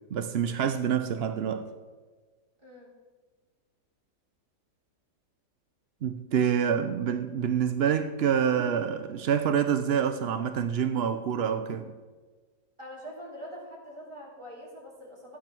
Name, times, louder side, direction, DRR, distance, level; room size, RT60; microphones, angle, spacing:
voice 1, 0.1-1.7 6.0-11.9, right 8 dB, 70° right, 0.6 m, -27 dB
voice 2, 2.6-2.9 12.8-15.4, equal, 15° right, 3.5 m, -44 dB
13.0 x 8.9 x 6.0 m
omnidirectional pair, 1.8 m